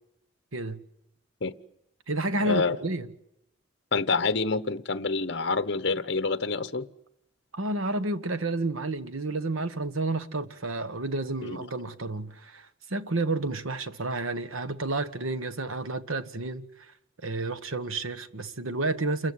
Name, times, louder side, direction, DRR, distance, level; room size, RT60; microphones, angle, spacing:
voice 1, 0.5-0.8 2.1-3.1 7.5-16.9 17.2-19.3, right 2 dB, 90° right, 1.4 m, -30 dB
voice 2, 2.4-2.8 3.9-6.9 11.4-11.6, left 4 dB, 60° left, 1.0 m, -27 dB
28.5 x 14.5 x 9.8 m
head